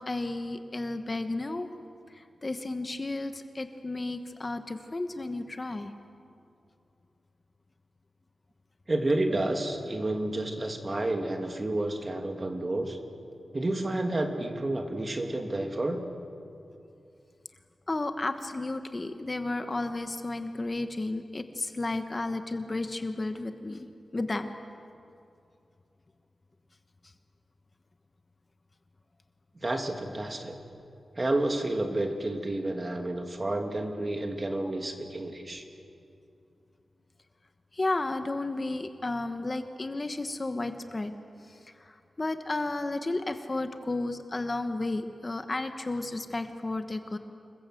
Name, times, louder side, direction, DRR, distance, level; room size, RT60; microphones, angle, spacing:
voice 1, 0.0-1.7 2.1-5.9 17.9-23.9 24.1-24.5 37.7-41.1 41.4-47.2, left 2 dB, 30° left, 7 dB, 1.2 m, -33 dB
voice 2, 8.9-13.0 13.5-16.0 29.5-30.6 31.1-35.6, right 1 dB, 30° right, 4 dB, 2.6 m, -30 dB
28.0 x 21.5 x 7.8 m, 2.6 s
wide cardioid pair, 100°, 0 cm